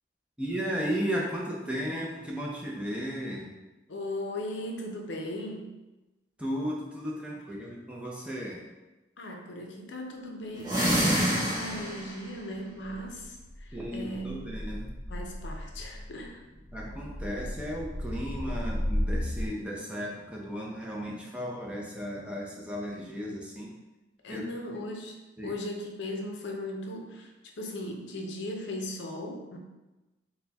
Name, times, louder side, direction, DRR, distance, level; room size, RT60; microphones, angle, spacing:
voice 1, 0.4-3.5 6.4-8.6 13.7-14.9 16.7-23.7 24.3-24.4 25.4-25.5, equal, 5° right, -3 dB, 0.5 m, -35 dB
voice 2, 3.9-5.7 9.2-14.5 15.1-16.4 24.2-25.2 25.4-27.3 27.6-29.6, left 1 dB, 80° left, 1 dB, 0.6 m, -38 dB
sound 1, 10.6-12.2, equal, 20° right, 0.9 m, -26 dB
sound 2, 11.8-19.5, equal, 40° left, 0.6 m, -35 dB
4.2 x 2.2 x 3.4 m, 1.1 s
head